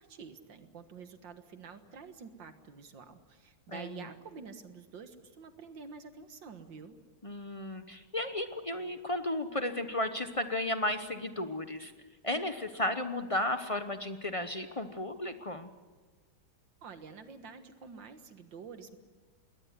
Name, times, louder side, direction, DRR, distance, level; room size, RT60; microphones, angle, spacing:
voice 1, 0.0-7.0 16.8-19.0, right 5 dB, 65° right, 9 dB, 2.1 m, -48 dB
voice 2, 3.7-4.1 7.2-11.9 12.2-15.7, left 1 dB, 45° left, 9 dB, 0.4 m, -34 dB
21.5 x 18.5 x 9.5 m, 1.3 s
omnidirectional pair, 2.3 m